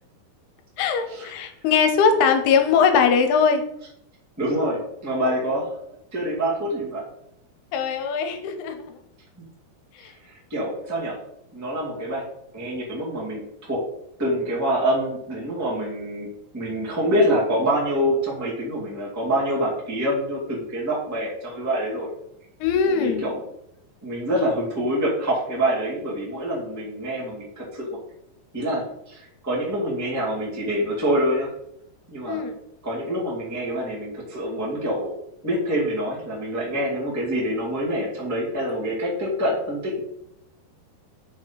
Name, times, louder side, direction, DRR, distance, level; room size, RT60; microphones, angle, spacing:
voice 1, 0.8-3.6 7.7-9.0 9.9-10.1 22.6-23.2 32.3-32.6, left 6 dB, 80° left, 7 dB, 2.7 m, -21 dB
voice 2, 4.4-5.7 6.1-7.0 10.2-11.2 11.5-12.2 12.5-13.8 14.2-16.3 16.5-22.1 23.0-23.4 24.0-28.0 28.5-31.5 32.1-32.4 32.8-35.1 35.4-40.0, equal, 15° right, -6 dB, 0.5 m, -26 dB
6.1 x 4.8 x 5.1 m, 0.80 s
omnidirectional pair, 4.7 m